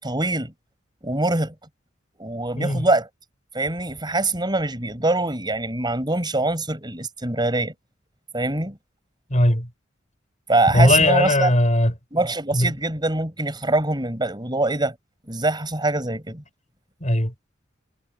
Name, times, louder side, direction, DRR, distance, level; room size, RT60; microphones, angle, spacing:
voice 1, 0.0-0.5 1.0-1.5 2.2-3.1 3.5-7.7 8.3-8.8 10.5-11.5 12.1-15.0 15.3-16.4, right 2 dB, 20° right, 7.4 m, -23 dB
voice 2, 2.5-2.9 9.3-9.7 10.7-11.9 12.5-12.7 17.0-17.3, left 1 dB, 35° left, 7.4 m, -19 dB
head